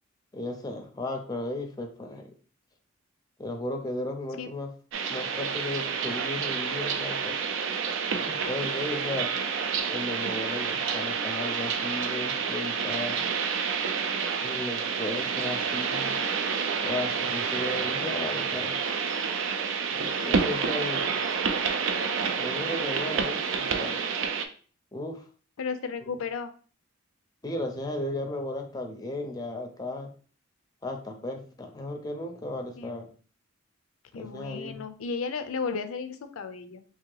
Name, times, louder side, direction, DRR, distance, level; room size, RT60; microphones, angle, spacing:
voice 1, 0.3-2.3 3.4-4.7 5.1-7.4 8.1-9.3 9.9-13.2 14.4-16.2 16.8-18.7 19.9-21.1 22.2-23.9 24.9-25.3 27.4-30.1 30.8-33.1 34.2-34.8, left 1 dB, 20° left, 4 dB, 0.5 m, -35 dB
sound 1, 4.9-24.5, right 6 dB, 60° right, 0.4 m, -29 dB
voice 2, 13.4-13.7 23.4-23.6 25.6-26.5 32.8-33.1 34.1-36.8, left 5 dB, 80° left, 9 dB, 0.5 m, -34 dB
3.0 x 2.8 x 3.8 m, 0.40 s
head